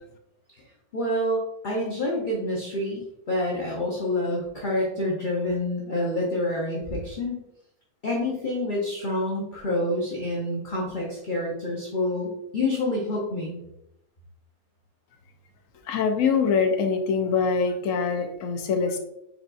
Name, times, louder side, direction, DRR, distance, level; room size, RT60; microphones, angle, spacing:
voice 1, 0.9-7.4 8.0-13.6, left 1 dB, 40° left, -4 dB, 0.9 m, -27 dB
voice 2, 15.9-19.0, left 5 dB, 70° left, 6 dB, 1.0 m, -24 dB
4.7 x 3.9 x 2.5 m, 0.83 s
omnidirectional pair, 1.6 m